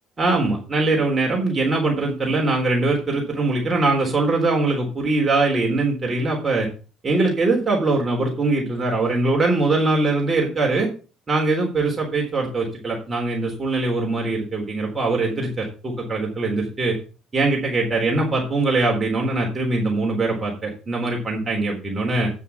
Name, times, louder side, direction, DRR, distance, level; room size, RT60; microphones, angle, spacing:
voice 1, 0.2-6.7 7.0-10.9 11.3-17.0 17.3-22.3, right 3 dB, 30° right, -1 dB, 3.8 m, -22 dB
9.1 x 6.5 x 5.9 m, 0.36 s
hypercardioid pair, 55°, 0 cm